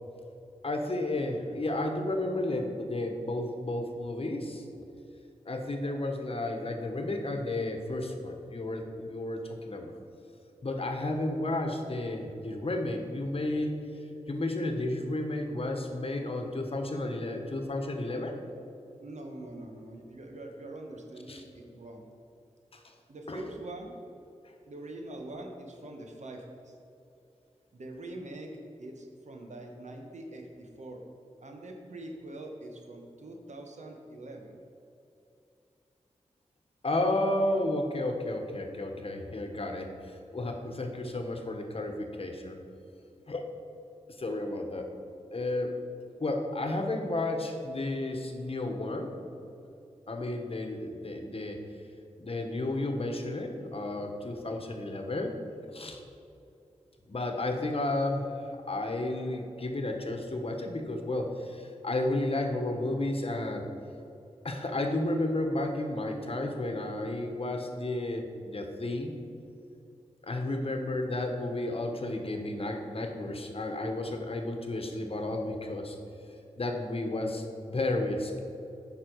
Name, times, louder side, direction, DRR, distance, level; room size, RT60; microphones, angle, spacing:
voice 1, 0.6-4.6 5.4-9.9 10.6-13.8 14.3-18.4 21.3-21.4 22.7-22.9 23.3-23.4 36.8-42.6 43.3-43.5 44.2-44.9 45.3-45.8 46.2-49.1 50.1-51.6 52.2-55.3 55.7-56.0 57.1-63.6 64.4-69.1 70.2-76.0 76.6-78.4, left 2 dB, 50° left, 3 dB, 1.2 m, -32 dB
voice 2, 19.0-22.1 23.1-24.0 24.7-26.7 27.7-31.0 31.4-34.6, right 1 dB, 75° right, 2 dB, 1.2 m, -43 dB
8.5 x 5.9 x 4.6 m, 2.8 s
cardioid pair, 40°, 12 cm